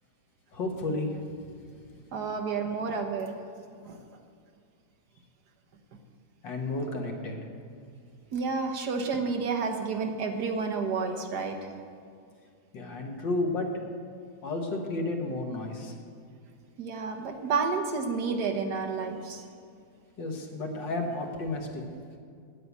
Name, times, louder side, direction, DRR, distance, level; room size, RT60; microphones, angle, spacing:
voice 1, 0.5-1.3 6.4-7.4 12.7-13.7 14.4-15.9 20.2-21.8, left 2 dB, 90° left, 2 dB, 2.1 m, -32 dB
voice 2, 2.1-3.4 3.8-4.0 8.3-11.8 16.8-19.4, right 4 dB, 65° right, 4 dB, 1.6 m, -30 dB
9.4 x 8.7 x 8.2 m, 2.3 s
omnidirectional pair, 1.9 m